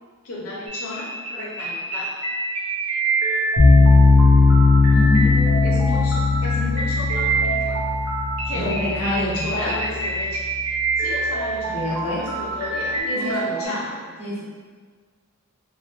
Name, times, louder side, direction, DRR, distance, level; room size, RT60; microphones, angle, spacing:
voice 1, 0.2-2.1 5.6-7.8 8.4-10.4 11.0-11.8 12.1-14.1, left 2 dB, 65° left, -5 dB, 0.6 m, -33 dB
sound 1, 0.7-13.6, right 3 dB, 85° right, 0.7 m, -27 dB
sound 2, 3.6-10.7, left 3 dB, 45° right, 0.9 m, -18 dB
voice 2, 4.9-6.0 8.5-9.8 11.7-12.2 13.0-13.8 14.2-14.4, equal, 25° left, -8 dB, 0.7 m, -27 dB
3.2 x 2.0 x 3.2 m, 1.5 s
head